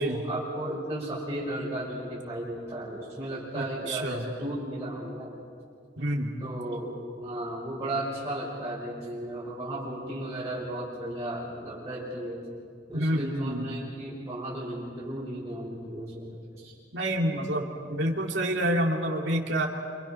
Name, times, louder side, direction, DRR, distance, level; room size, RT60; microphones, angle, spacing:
voice 1, 0.0-5.4 6.4-12.4 12.9-16.2 16.6-16.8, right 1 dB, 15° right, -9 dB, 6.1 m, -35 dB
voice 2, 3.5-4.2 6.0-6.4 12.9-13.7 16.9-19.7, right 1 dB, 70° right, 1 dB, 2.8 m, -28 dB
27.5 x 27.5 x 5.9 m, 2.2 s
head